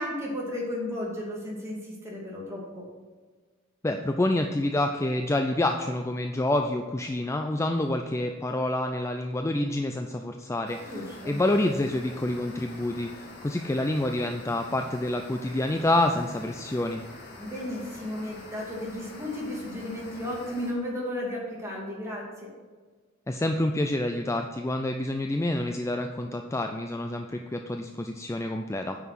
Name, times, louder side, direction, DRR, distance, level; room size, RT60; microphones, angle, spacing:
voice 1, 0.0-2.8 10.9-11.4 17.4-22.3, left 1 dB, 15° right, -4 dB, 2.5 m, -34 dB
voice 2, 3.8-10.8 11.3-17.0 23.3-29.0, left 1 dB, 15° left, 5 dB, 0.4 m, -27 dB
sound 1, 10.6-20.7, left 2 dB, 55° left, 2.3 m, -46 dB
9.4 x 5.8 x 6.2 m, 1.4 s
head